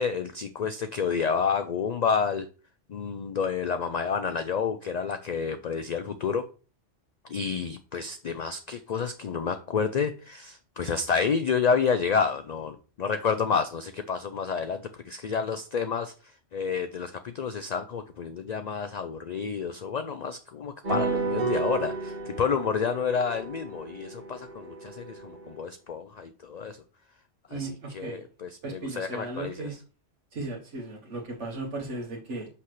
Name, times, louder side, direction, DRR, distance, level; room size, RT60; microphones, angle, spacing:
voice 1, 0.0-2.5 2.9-6.4 7.3-16.1 16.5-26.8 27.5-29.7, left 6 dB, 60° left, 0.4 m, -29 dB
sound 1, 20.8-25.6, right 4 dB, 40° right, 1.6 m, -32 dB
voice 2, 27.5-28.2 28.6-29.7 30.3-32.5, right 2 dB, 75° right, 1.6 m, -36 dB
6.0 x 5.8 x 3.2 m
omnidirectional pair, 1.2 m